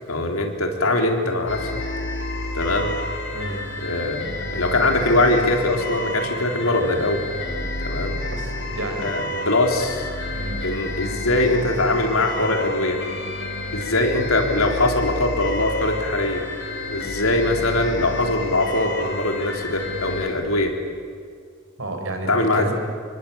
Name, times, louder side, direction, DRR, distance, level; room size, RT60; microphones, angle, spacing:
voice 1, 0.1-1.7 2.5-3.0 3.8-4.3 4.5-7.2 7.8-8.2 9.0-10.1 10.6-13.0 13.7-16.4 16.9-20.8 22.3-22.7, left 2 dB, 85° left, 4 dB, 3.7 m, -22 dB
sound 1, 1.5-20.3, left 1 dB, 55° left, 4.6 m, -30 dB
voice 2, 3.3-3.9 8.3-9.1 10.3-10.6 21.8-22.7, right 2 dB, 65° right, 4 dB, 5.0 m, -31 dB
27.0 x 24.5 x 8.7 m, 2.1 s
head